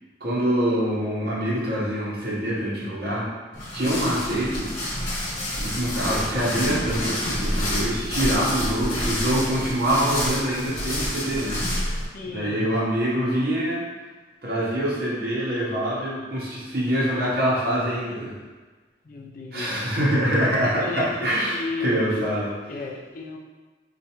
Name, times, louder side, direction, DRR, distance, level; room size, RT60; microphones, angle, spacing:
voice 1, 0.2-3.3 3.7-4.7 5.6-11.6 12.3-13.8 14.4-18.3 19.5-22.5, equal, 60° right, -7 dB, 1.0 m, -25 dB
sound 1, 3.5-12.1, left 1 dB, 35° left, 1.2 m, -28 dB
Crushing, 6.0-9.8, equal, ahead, 0.9 m, -39 dB
voice 2, 8.3-8.7 12.1-12.7 19.0-19.7 20.8-22.2 22.7-23.4, left 3 dB, 50° left, 1 dB, 0.5 m, -34 dB
4.4 x 2.4 x 2.9 m, 1.3 s
head